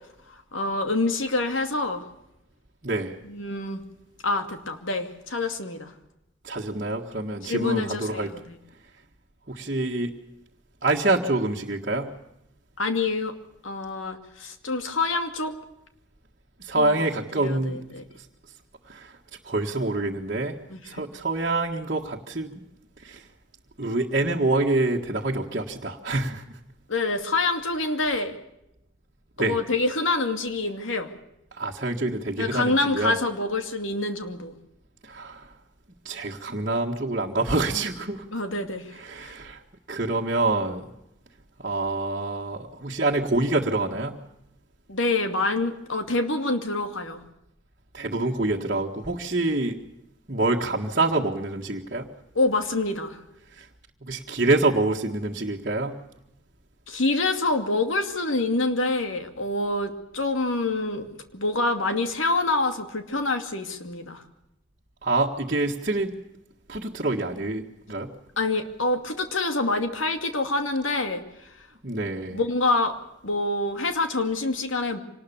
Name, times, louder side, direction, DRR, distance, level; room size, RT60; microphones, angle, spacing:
voice 1, 0.5-2.1 3.2-3.8 4.2-5.9 7.4-8.6 12.8-13.3 13.6-15.5 16.8-17.0 17.3-18.0 20.7-21.0 26.9-28.4 29.4-31.1 32.4-34.5 38.3-38.9 39.2-39.3 44.9-47.2 52.3-53.2 56.9-61.1 61.3-64.2 68.4-71.2 72.3-73.0 73.2-75.0, left 2 dB, 85° left, 7 dB, 2.5 m, -26 dB
voice 2, 2.8-3.1 6.4-8.3 9.5-10.1 10.8-12.2 16.6-17.8 18.9-19.2 19.5-22.6 23.0-23.2 23.8-26.4 29.4-29.6 31.6-33.2 35.0-35.5 36.1-38.4 38.9-39.6 39.9-40.9 41.6-44.2 47.9-49.8 50.3-52.1 53.6-53.7 54.0-56.0 65.0-66.1 66.7-68.1 71.8-72.4, right 2 dB, 45° right, -3 dB, 1.7 m, -26 dB
25.5 x 19.5 x 7.1 m, 0.85 s
head